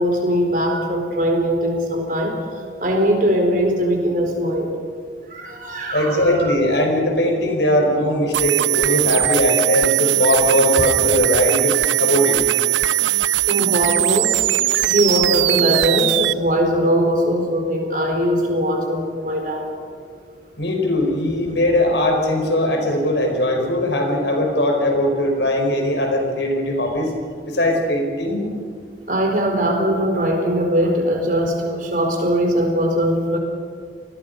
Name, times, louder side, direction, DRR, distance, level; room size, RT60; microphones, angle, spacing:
voice 1, 0.0-2.4 2.8-4.8 5.3-6.5 13.5-14.4 14.8-19.7 29.1-33.4, equal, 45° right, 2 dB, 4.4 m, -20 dB
voice 2, 5.9-12.4 20.6-27.1 27.5-28.4, left 1 dB, 75° left, 3 dB, 4.9 m, -20 dB
sound 1, 8.3-16.3, right 15 dB, 85° right, 0.5 m, -19 dB
29.0 x 20.0 x 5.4 m, 2.1 s
head